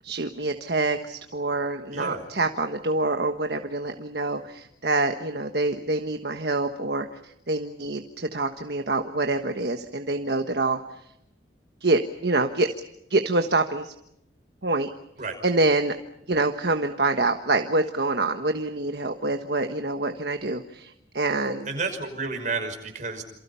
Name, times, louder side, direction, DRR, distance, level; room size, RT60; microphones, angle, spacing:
voice 1, 0.0-7.1 7.5-10.8 11.8-12.7 13.1-13.9 14.6-14.9 15.4-15.9 16.3-21.7, right 2 dB, 60° right, 6 dB, 1.4 m, -26 dB
voice 2, 1.9-2.2 15.2-15.4 21.7-23.2, right 4 dB, 45° right, 4 dB, 5.6 m, -31 dB
28.5 x 28.0 x 5.7 m, 0.79 s
head